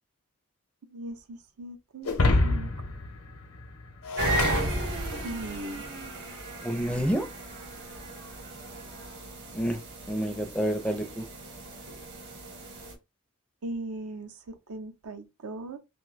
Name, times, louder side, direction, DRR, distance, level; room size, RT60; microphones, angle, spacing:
voice 1, 0.9-2.2 2.4-2.7 5.2-5.9 13.6-15.8, right 2 dB, 80° right, 0.6 m, -39 dB
Shatter, 2.0-5.5, left 2 dB, 75° left, 0.7 m, -28 dB
sound 1, 4.2-12.9, right 1 dB, 50° right, 0.9 m, -35 dB
voice 2, 6.6-7.3 9.5-9.8 10.1-11.3, equal, 5° left, 0.4 m, -28 dB
2.7 x 2.2 x 3.9 m
head